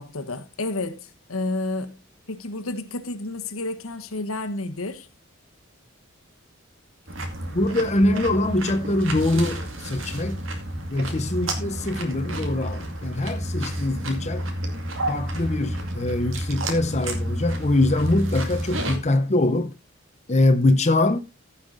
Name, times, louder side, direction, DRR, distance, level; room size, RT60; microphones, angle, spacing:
voice 1, 0.0-2.0 2.3-5.1, left 2 dB, 85° left, 1.3 m, -30 dB
sound 1, 7.1-19.0, right 1 dB, 65° right, 2.3 m, -30 dB
voice 2, 7.5-10.4 10.9-14.5 15.1-19.7 20.3-21.2, left 2 dB, 35° left, 0.8 m, -23 dB
15.5 x 5.7 x 3.9 m
head